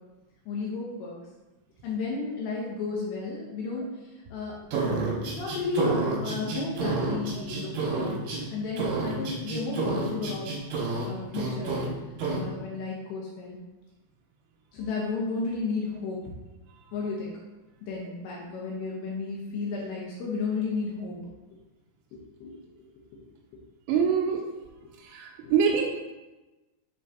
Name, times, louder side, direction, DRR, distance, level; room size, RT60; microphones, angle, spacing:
voice 1, 0.5-1.2 1.8-3.9 4.1-4.5 5.2-10.5 11.0-11.8 12.3-13.6 14.7-16.2 16.9-17.3 17.9-21.2 22.1-22.6 25.4-25.5, left 4 dB, 80° left, -4 dB, 2.6 m, -33 dB
sound 1, 4.7-8.4 8.8-11.1 11.3-11.9 12.2-12.4, right 3 dB, 65° right, 2.3 m, -29 dB
voice 2, 23.9-24.4 25.1-25.9, right 6 dB, 85° right, 1 dB, 3.1 m, -24 dB
11.0 x 3.9 x 2.7 m, 1.1 s
omnidirectional pair, 5.9 m